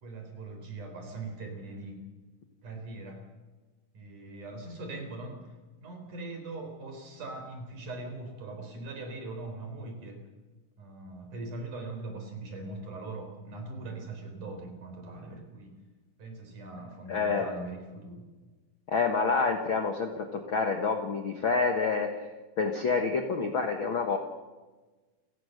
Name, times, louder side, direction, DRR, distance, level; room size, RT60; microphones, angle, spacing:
voice 1, 0.0-2.0 2.6-3.2 3.9-5.5 5.8-10.2 10.8-15.7 16.2-18.3, right 2 dB, 55° right, 4 dB, 5.5 m, -41 dB
voice 2, 17.1-17.5 18.9-22.3 22.6-24.2, left 4 dB, 50° left, 5 dB, 1.5 m, -28 dB
29.0 x 17.0 x 6.6 m, 1.3 s
omnidirectional pair, 4.3 m